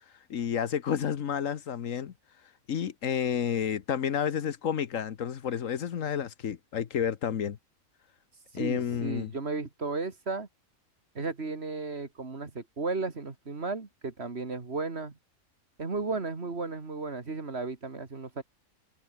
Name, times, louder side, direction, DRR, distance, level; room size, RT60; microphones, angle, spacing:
voice 1, 0.3-2.1 2.7-7.6 8.5-9.3, left 8 dB, 70° left, 1.4 m, -30 dB
voice 2, 8.5-10.5 11.1-15.1 15.8-18.4, right 3 dB, 50° right, 2.5 m, -34 dB
omnidirectional pair, 1.4 m